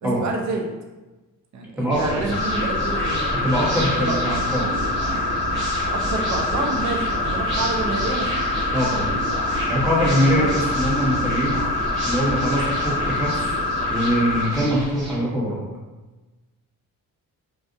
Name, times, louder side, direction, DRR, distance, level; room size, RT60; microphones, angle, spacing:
voice 1, 0.0-0.6 1.5-3.3 4.0-4.2 5.9-8.5 10.4-10.6, right 3 dB, 55° right, 1 dB, 0.5 m, -28 dB
sound 1, 1.9-15.2, equal, 35° right, 1.2 m, -29 dB
sound 2, 2.3-14.4, left 2 dB, 75° left, 0.7 m, -26 dB
voice 2, 3.3-4.7 8.7-9.2 9.7-11.6 12.0-13.5 13.9-15.6, equal, 5° right, -6 dB, 0.9 m, -23 dB
3.7 x 2.4 x 2.5 m, 1.2 s
cardioid pair, 120°, 35 cm